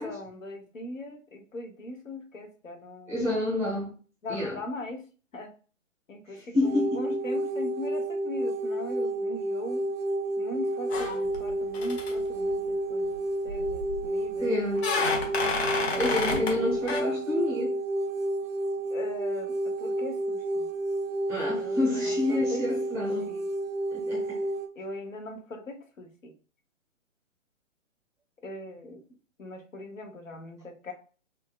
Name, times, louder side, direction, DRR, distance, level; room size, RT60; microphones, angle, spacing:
voice 1, 0.0-3.3 4.2-5.0 5.3-5.5 6.1-9.8 10.4-14.5 15.8-16.8 18.9-20.7 21.5-22.6 22.9-23.5 24.7-26.3 28.4-29.0 29.4-30.9, left 2 dB, 75° left, 1.0 m, -40 dB
voice 2, 3.1-3.9 4.3-4.6 6.3-7.2 14.4-14.9 16.0-17.7 21.3-23.3 23.9-24.5, left 2 dB, 5° right, 0.7 m, -29 dB
sound 1, 6.6-24.7, right 1 dB, 80° right, 0.6 m, -30 dB
sound 2, 10.9-11.5 11.7-12.1 13.5-14.0 14.8-16.6 16.9-17.0, left 3 dB, 55° left, 0.9 m, -29 dB
3.6 x 2.1 x 2.3 m
figure-of-eight pair, 130°, 39 cm